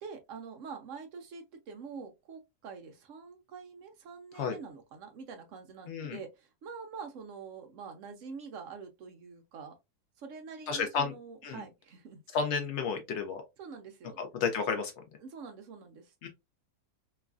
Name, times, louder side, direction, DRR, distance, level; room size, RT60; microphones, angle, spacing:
voice 1, 0.0-9.8 10.2-12.2 13.6-14.2 15.2-16.3, right 5 dB, 70° right, 0.7 m, -46 dB
voice 2, 5.9-6.2 10.7-11.1 11.4-11.6 12.3-13.4 14.2-14.9 16.2-16.3, left 5 dB, 85° left, 0.6 m, -32 dB
3.0 x 2.4 x 2.2 m
omnidirectional pair, 1.8 m